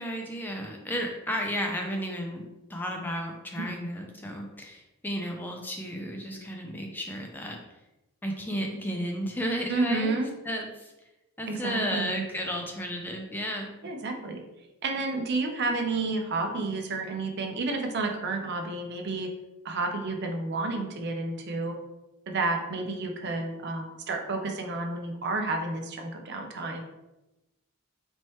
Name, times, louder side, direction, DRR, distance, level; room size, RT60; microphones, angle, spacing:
voice 1, 0.0-7.6 8.2-10.2 10.4-10.9 11.4-13.7, equal, 10° left, 1 dB, 0.3 m, -33 dB
voice 2, 9.7-10.3 11.5-12.2 13.8-14.4 14.8-19.3 19.6-21.7 22.3-26.8, right 3 dB, 50° right, 4 dB, 0.5 m, -30 dB
4.3 x 3.1 x 3.0 m, 1.0 s
head